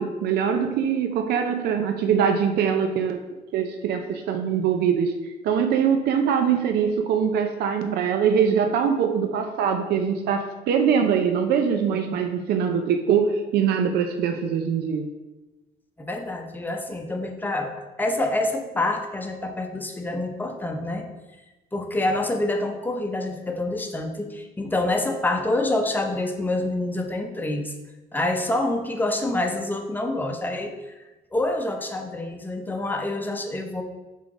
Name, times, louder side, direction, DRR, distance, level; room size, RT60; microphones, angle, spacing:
voice 1, 0.0-5.1 5.4-15.1, right 7 dB, 70° right, 6 dB, 0.6 m, -23 dB
voice 2, 16.0-21.1 21.7-27.7 28.1-30.9 31.3-33.8, left 2 dB, 10° left, 3 dB, 0.7 m, -27 dB
5.7 x 3.7 x 4.8 m, 1.1 s
cardioid pair, 110°, 17 cm